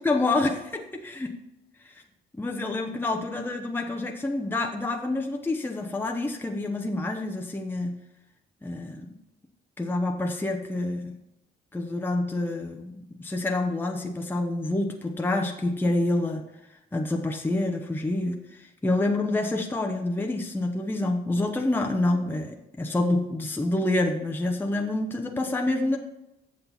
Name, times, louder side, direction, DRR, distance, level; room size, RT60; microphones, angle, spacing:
voice 1, 0.0-1.4 1.8-2.0 2.4-8.0 8.6-9.2 9.8-11.2 11.7-16.4 16.9-26.0, left 2 dB, 10° left, 3 dB, 0.8 m, -27 dB
7.9 x 6.5 x 4.2 m, 0.91 s
cardioid pair, 90°, 20 cm